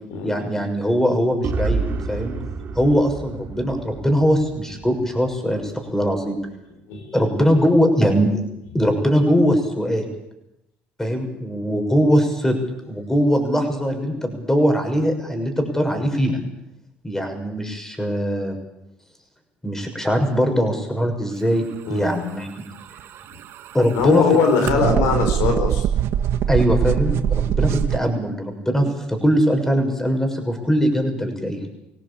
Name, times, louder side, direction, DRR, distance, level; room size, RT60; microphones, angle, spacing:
voice 1, 0.2-2.3 2.7-6.4 7.1-8.4 8.7-10.1 11.0-12.6 12.9-16.4 17.0-18.6 19.6-22.6 23.7-24.2 24.6-24.8 26.5-31.6, equal, 10° left, 5 dB, 6.4 m, -21 dB
sound 1, 1.4-5.3, right 4 dB, 45° right, 3.5 m, -29 dB
sound 2, 22.8-28.0, right 9 dB, 60° right, 1.4 m, -23 dB
voice 2, 23.9-25.8, left 5 dB, 80° left, 6 dB, 4.9 m, -20 dB
23.5 x 17.5 x 8.6 m, 0.86 s
supercardioid pair, 85°, 5 cm